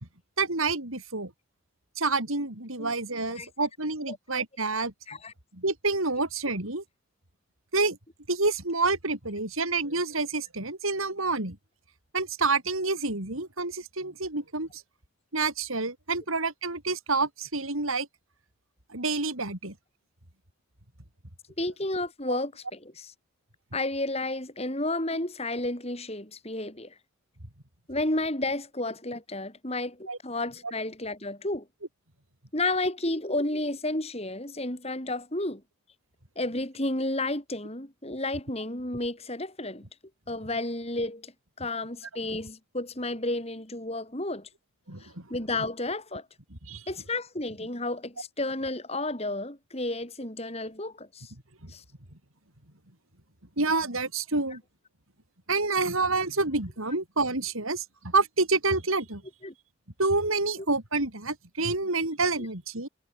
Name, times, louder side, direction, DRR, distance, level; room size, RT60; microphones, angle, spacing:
voice 1, 0.4-1.3 2.0-4.9 5.5-6.8 7.7-8.0 8.3-11.6 12.1-14.8 15.3-18.1 18.9-19.7 22.3-22.4 30.1-30.2 44.9-45.3 46.7-46.8 51.6-51.7 53.6-54.6 55.5-59.2 60.0-62.9, right 3 dB, 85° right, 5.7 m, -28 dB
voice 2, 21.6-23.1 23.7-26.9 27.9-31.7 32.5-35.6 36.4-39.8 40.3-41.3 41.6-44.5 45.0-46.3 46.9-51.3 51.7-51.8 59.4-59.5 62.4-62.5, left 2 dB, 30° left, 4.1 m, -32 dB
head